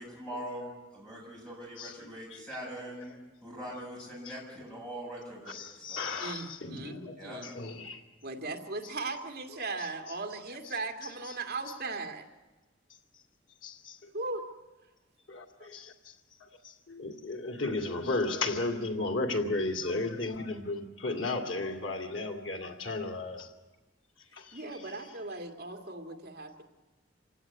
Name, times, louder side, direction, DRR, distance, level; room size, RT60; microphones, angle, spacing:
voice 1, 0.0-3.1 3.4-6.2 7.2-7.4, equal, 5° left, 7.9 m, -42 dB
voice 2, 5.5-7.1 7.6-8.0 13.6-13.7 15.3-15.4 15.7-15.8 16.9-23.4, left 2 dB, 80° left, 2.5 m, -33 dB
voice 3, 6.2-7.5 8.2-12.2 14.1-14.4 15.6-15.7 24.5-26.6, right 3 dB, 50° right, 2.2 m, -38 dB
26.5 x 16.5 x 9.7 m
head